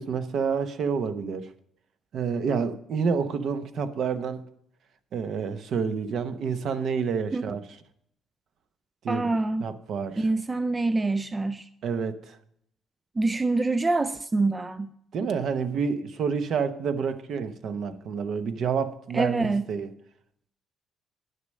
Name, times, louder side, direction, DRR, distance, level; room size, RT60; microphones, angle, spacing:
voice 1, 0.0-1.5 2.1-4.4 5.1-7.6 9.0-9.3 9.6-10.3 11.8-12.4 15.1-19.9, right 6 dB, 55° right, 0.8 m, -28 dB
voice 2, 9.1-9.7 10.2-11.7 13.2-14.9 19.1-19.7, right 3 dB, 15° right, 0.3 m, -25 dB
10.5 x 6.6 x 6.4 m
cardioid pair, 140°, 0 cm